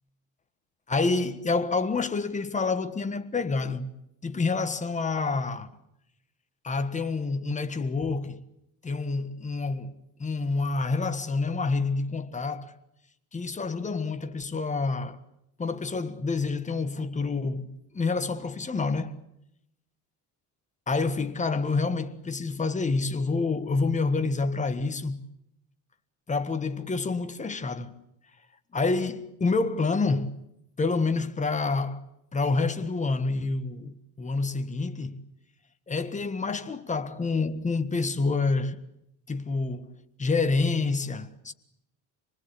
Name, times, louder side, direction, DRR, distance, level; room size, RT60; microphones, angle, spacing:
voice 1, 0.9-3.9 4.2-5.7 6.6-8.4 8.8-12.7 13.3-15.2 15.6-19.2 20.9-25.2 26.3-28.0 28.7-30.3 30.8-32.0 32.3-35.2 35.9-38.8 39.3-39.9 40.2-41.5, left 3 dB, 20° left, 1.5 m, -28 dB
27.5 x 20.0 x 8.5 m
cardioid pair, 140°, 39 cm